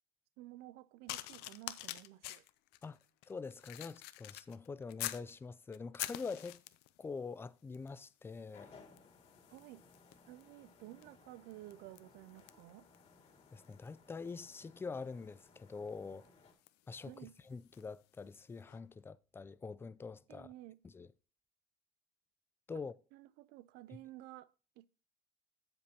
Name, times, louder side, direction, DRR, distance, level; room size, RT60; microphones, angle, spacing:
voice 1, 0.4-2.4 9.5-9.9 10.3-12.9 17.0-17.3 20.3-20.8 23.1-24.9, right 16 dB, 80° right, 0.4 m, -53 dB
sound 1, 1.1-5.3 5.7-7.0 7.7-8.0 8.3-18.0 18.7-18.8, left 17 dB, 85° left, 0.6 m, -48 dB
voice 2, 3.3-6.6 7.0-8.7 13.5-16.3 16.9-20.5 20.8-21.1 22.7-22.9, left 4 dB, 15° left, 0.3 m, -45 dB
sound 2, 8.5-16.5, left 4 dB, 35° left, 2.1 m, -62 dB
15.0 x 5.3 x 2.8 m
cardioid pair, 130°, 17 cm